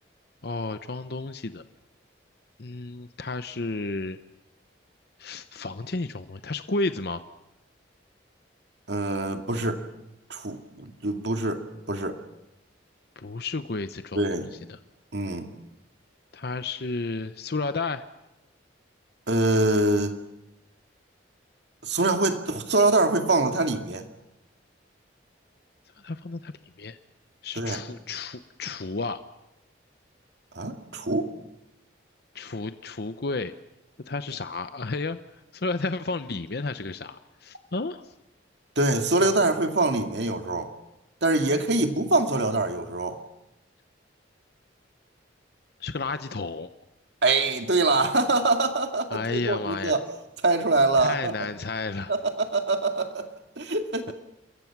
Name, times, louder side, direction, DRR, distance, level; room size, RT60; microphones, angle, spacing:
voice 1, 0.4-1.6 2.6-4.2 5.2-7.2 13.2-14.8 16.3-18.0 26.0-26.5 26.8-27.0 27.4-29.2 32.3-33.5 34.1-35.2 35.5-38.0 41.7-42.1 45.8-46.7 49.1-50.0 51.0-52.1, left 3 dB, 55° left, 10 dB, 0.8 m, -32 dB
voice 2, 8.9-9.8 10.3-12.2 14.1-14.5 15.1-15.5 19.3-20.2 21.8-24.1 27.6-27.8 30.5-31.3 38.8-40.7 41.2-43.2 47.2-50.0 50.4-51.3 52.1-54.1, right 2 dB, 65° right, 5 dB, 2.2 m, -24 dB
28.0 x 22.5 x 6.0 m, 0.91 s
head